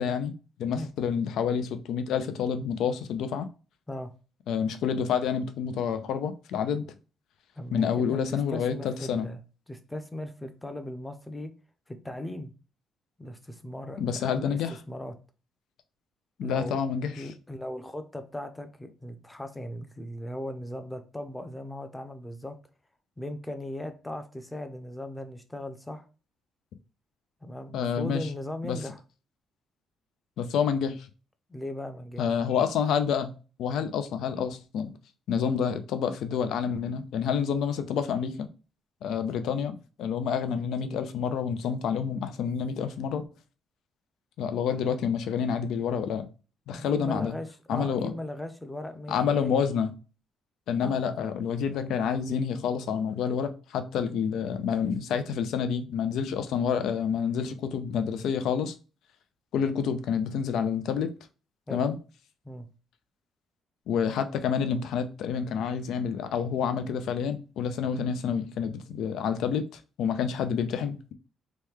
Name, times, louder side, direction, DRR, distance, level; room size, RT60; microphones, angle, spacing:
voice 1, 0.0-3.5 4.5-6.9 7.7-9.3 14.0-14.7 16.4-17.3 27.7-28.3 28.6-28.8 30.4-31.1 32.2-34.9 35.3-38.5 39.0-43.2 44.4-46.3 46.7-47.3 47.7-48.1 49.1-49.9 50.7-58.7 59.5-61.1 61.7-62.0 63.9-71.1, left 7 dB, 75° left, 0.4 m, -28 dB
voice 2, 7.6-9.4 9.7-11.5 11.9-12.5 13.2-14.6 14.9-15.1 16.4-16.8 17.1-22.6 23.2-26.1 27.4-29.0 31.5-32.2 46.7-49.6 50.8-51.0 61.7-61.9 62.4-62.7, left 1 dB, 10° left, 0.6 m, -38 dB
3.0 x 2.2 x 3.4 m
cardioid pair, 85°, 0 cm